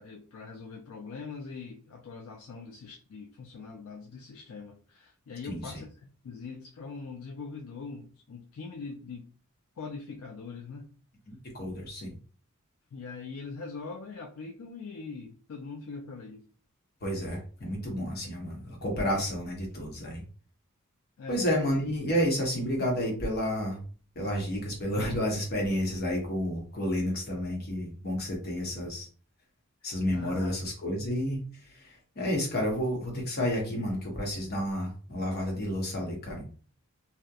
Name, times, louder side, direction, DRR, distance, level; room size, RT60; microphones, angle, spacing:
voice 1, 0.0-9.3 9.8-10.9 12.9-16.4 21.2-21.5 30.1-30.5, left 4 dB, 70° left, 2 dB, 0.3 m, -42 dB
voice 2, 5.4-5.8 11.3-12.2 17.0-20.2 21.3-23.8 24.2-29.1 29.8-31.4 31.7-36.5, equal, 50° left, 0 dB, 0.9 m, -31 dB
2.7 x 2.1 x 2.3 m, 0.40 s
head